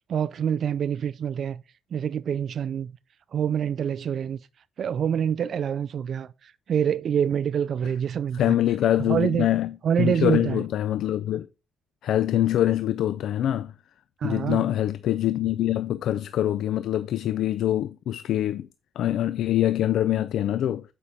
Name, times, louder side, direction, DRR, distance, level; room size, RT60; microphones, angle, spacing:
voice 1, 0.1-1.6 1.9-2.9 3.3-4.4 4.8-8.5 9.1-9.5 9.8-10.6 14.2-14.6, right 8 dB, 60° right, 0.3 m, -26 dB
voice 2, 8.3-9.7 10.0-11.5 12.0-13.7 14.2-18.7 19.0-20.8, left 12 dB, 75° left, 0.4 m, -24 dB
8.2 x 5.4 x 3.3 m
cardioid pair, 90°, 0 cm